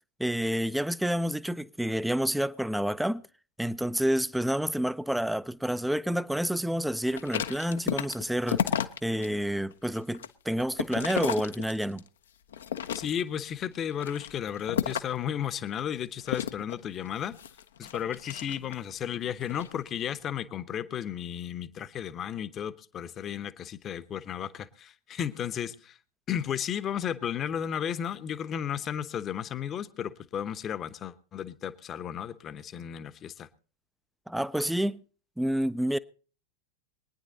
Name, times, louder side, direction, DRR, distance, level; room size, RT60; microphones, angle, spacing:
voice 1, 0.2-3.2 3.6-8.6 9.0-12.0 34.3-35.0 35.4-36.0, equal, ahead, 0.6 m, -29 dB
sound 1, 7.1-9.3 9.7-12.1 12.5-13.4 13.9-15.3 16.2-18.9 19.4-19.7, left 9 dB, 65° left, 0.8 m, -33 dB
voice 2, 12.9-17.4 17.8-26.0 26.3-33.5, left 9 dB, 30° left, 1.0 m, -34 dB
23.5 x 9.9 x 4.0 m
figure-of-eight pair, 90°, 0 cm